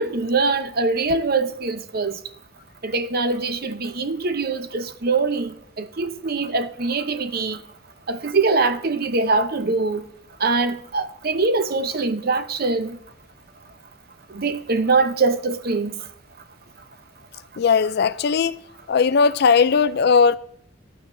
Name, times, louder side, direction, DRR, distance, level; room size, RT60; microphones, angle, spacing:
voice 1, 0.0-2.2 2.8-7.6 8.1-10.0 10.4-13.0 14.3-16.0, right 3 dB, 50° right, 0.8 m, -23 dB
voice 2, 17.6-18.5 18.9-20.4, left 5 dB, 55° left, 0.4 m, -18 dB
14.5 x 11.0 x 2.6 m
head